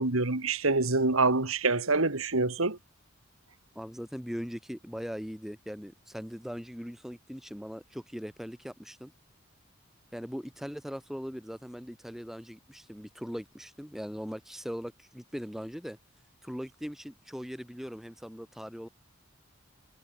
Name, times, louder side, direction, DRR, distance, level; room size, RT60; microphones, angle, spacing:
voice 1, 0.0-2.8, right 3 dB, 90° right, 2.3 m, -26 dB
voice 2, 3.8-9.1 10.1-16.0 16.4-18.9, equal, ahead, 5.4 m, -40 dB
head